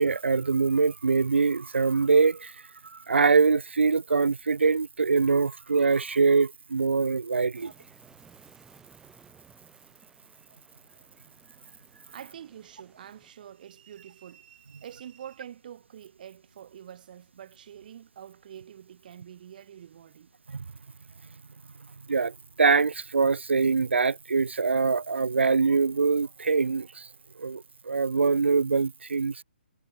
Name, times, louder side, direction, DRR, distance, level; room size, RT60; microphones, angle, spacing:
voice 1, 0.0-2.5 2.9-7.7 20.5-20.7 22.1-27.1 27.4-29.4, right 4 dB, 85° right, 0.5 m, -24 dB
sound 1, 7.5-13.3, right 6 dB, 10° right, 4.8 m, -58 dB
voice 2, 12.1-20.3, right 9 dB, 50° right, 5.9 m, -46 dB
hypercardioid pair, 145°, 6 cm